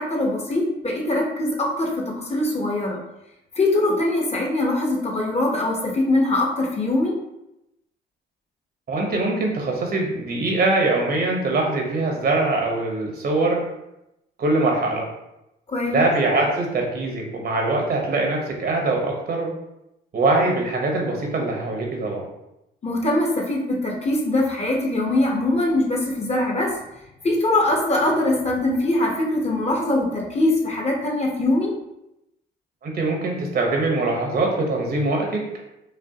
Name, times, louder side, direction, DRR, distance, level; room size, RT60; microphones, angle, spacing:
voice 1, 0.0-3.0 3.6-7.2 15.7-16.0 22.8-26.7 27.2-31.7, left 2 dB, 35° left, 0 dB, 0.9 m, -22 dB
voice 2, 8.9-13.6 14.4-15.1 15.9-19.5 20.1-22.3 32.8-35.5, right 2 dB, 50° right, 0 dB, 1.0 m, -22 dB
5.2 x 2.0 x 2.8 m, 0.88 s
cardioid pair, 90°, 20 cm